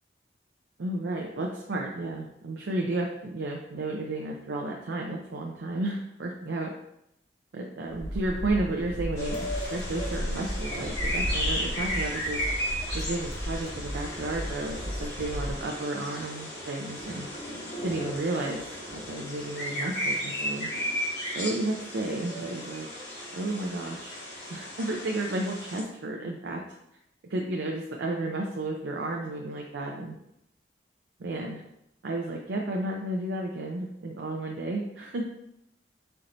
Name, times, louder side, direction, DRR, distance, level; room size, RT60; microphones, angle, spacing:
voice 1, 0.8-6.7 7.5-12.4 12.9-17.3 17.8-20.7 21.3-22.9 23.3-24.2 24.5-26.6 27.3-30.2 31.2-31.6 32.0-35.2, right 2 dB, 85° right, 0 dB, 0.5 m, -32 dB
sound 1, 7.9-15.6, equal, 15° left, 0.6 m, -35 dB
sound 2, 9.2-25.8, equal, 70° left, 1.6 m, -35 dB
4.5 x 2.6 x 4.2 m, 0.81 s
head